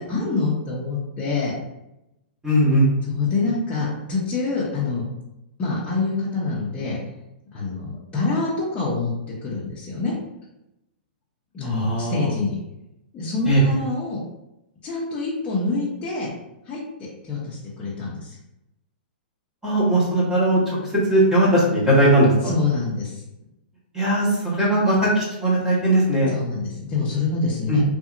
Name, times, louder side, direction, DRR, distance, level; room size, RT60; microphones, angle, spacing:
voice 1, 0.1-1.5 3.0-5.1 5.6-7.0 7.5-10.1 11.5-12.6 13.1-14.2 14.8-16.3 16.7-18.4 22.4-23.2 26.3-27.8, left 3 dB, 20° left, -8 dB, 0.7 m, -26 dB
voice 2, 2.4-2.9 11.6-12.3 13.5-13.6 19.6-20.8 21.1-22.5 23.9-26.3 27.7-27.8, right 1 dB, 10° right, -7 dB, 1.1 m, -19 dB
2.8 x 2.6 x 2.5 m, 0.89 s
hypercardioid pair, 145°, 6 cm